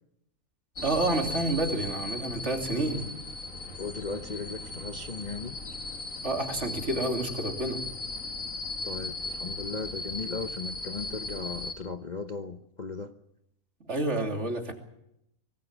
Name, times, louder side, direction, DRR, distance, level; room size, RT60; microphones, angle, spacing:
sound 1, 0.8-11.7, left 2 dB, 65° left, 3.0 m, -37 dB
voice 1, 0.8-3.1 6.2-7.8 13.8-14.7, right 2 dB, 50° right, 3 dB, 3.3 m, -29 dB
voice 2, 3.8-5.6 8.8-13.1, left 4 dB, 35° left, 7 dB, 0.9 m, -37 dB
25.0 x 18.5 x 7.4 m, 0.80 s
omnidirectional pair, 1.5 m